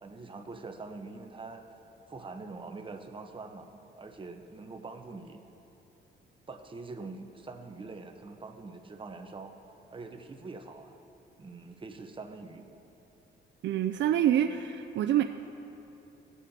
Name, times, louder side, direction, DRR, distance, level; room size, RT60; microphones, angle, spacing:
voice 1, 0.0-1.6 2.1-3.7 4.0-5.4 6.5-9.5 9.9-11.0 11.4-12.7, right 3 dB, 25° right, 4 dB, 0.9 m, -44 dB
voice 2, 13.6-15.2, right 11 dB, 65° right, 8 dB, 0.4 m, -26 dB
18.0 x 8.2 x 2.8 m, 3.0 s
cardioid pair, 90°, 20 cm